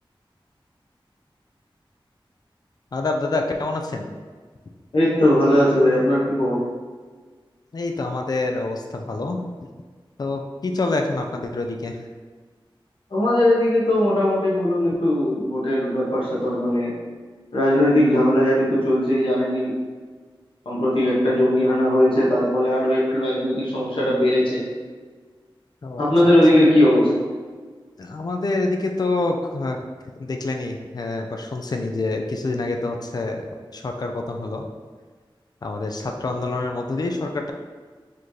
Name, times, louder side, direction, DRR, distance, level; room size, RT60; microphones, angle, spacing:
voice 1, 2.9-4.1 7.7-9.4 10.2-12.0 25.8-26.1 28.0-29.8 30.2-33.5 33.7-34.7 35.6-37.5, left 2 dB, 45° left, 3 dB, 0.4 m, -26 dB
voice 2, 4.9-6.6 13.1-16.9 17.5-19.7 20.6-24.6 26.0-27.1, left 1 dB, 75° left, -7 dB, 1.1 m, -19 dB
4.1 x 2.7 x 3.2 m, 1.5 s
wide cardioid pair, 70°, 9 cm